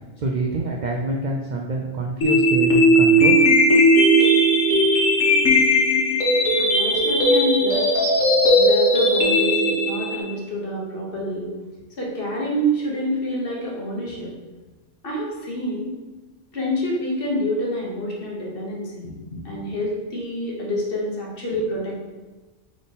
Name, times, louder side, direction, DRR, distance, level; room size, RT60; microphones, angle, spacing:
voice 1, 0.2-3.4, right 2 dB, 65° right, 0 dB, 0.4 m, -26 dB
sound 1, 2.2-10.2, equal, 85° left, 1.4 m, -17 dB
voice 2, 6.6-8.0 8.5-11.5 12.0-14.3 15.0-16.0 16.5-22.0, equal, 50° left, -3 dB, 1.1 m, -27 dB
3.7 x 3.6 x 4.0 m, 1.2 s
omnidirectional pair, 1.3 m